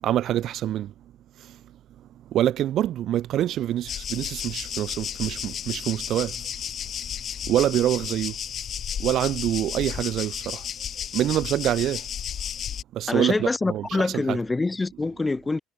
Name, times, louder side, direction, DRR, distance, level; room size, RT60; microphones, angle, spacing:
voice 1, 0.0-0.9 1.4-1.6 2.3-6.4 7.4-8.4 9.0-10.7 11.1-12.0 12.9-14.4, right 12 dB, 60° right, 1.0 m, -26 dB
sound 1, 3.9-12.8, left 9 dB, 50° left, 0.6 m, -33 dB
voice 2, 13.1-15.6, left 3 dB, 20° left, 1.5 m, -25 dB
hypercardioid pair, 65°, 0 cm